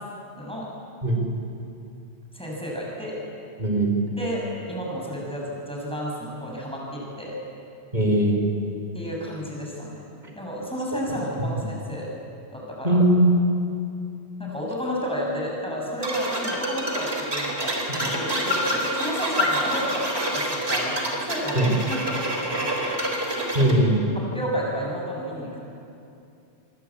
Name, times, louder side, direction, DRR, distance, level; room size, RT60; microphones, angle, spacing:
voice 1, 0.4-0.7 2.3-3.2 4.2-7.4 8.9-10.0 10.4-12.1 12.5-13.0 14.4-20.1 20.3-23.0 24.2-25.6, equal, 5° left, -3 dB, 7.0 m, -31 dB
voice 2, 3.6-3.9 7.9-8.4 12.8-13.3 17.9-18.1 21.5-21.7 23.5-24.0, right 1 dB, 40° right, 1 dB, 5.0 m, -20 dB
sound 1, 16.0-23.8, equal, 65° right, 4.3 m, -27 dB
27.5 x 23.0 x 8.6 m, 2.6 s
omnidirectional pair, 1.1 m